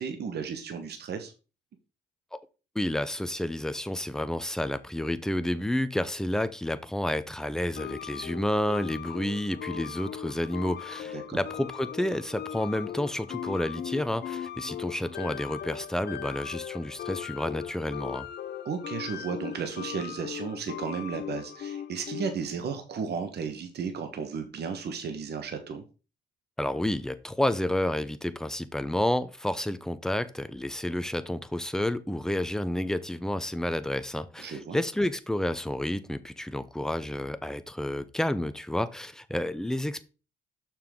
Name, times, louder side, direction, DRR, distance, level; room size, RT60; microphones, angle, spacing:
voice 1, 0.0-1.3 11.1-11.4 18.6-25.8 34.4-34.8, right 6 dB, 55° right, 1.2 m, -34 dB
voice 2, 2.7-18.3 26.6-40.0, left 1 dB, 5° left, 0.7 m, -30 dB
sound 1, 7.8-22.5, left 9 dB, 55° left, 0.7 m, -39 dB
6.5 x 5.9 x 3.7 m
cardioid pair, 90°, 20 cm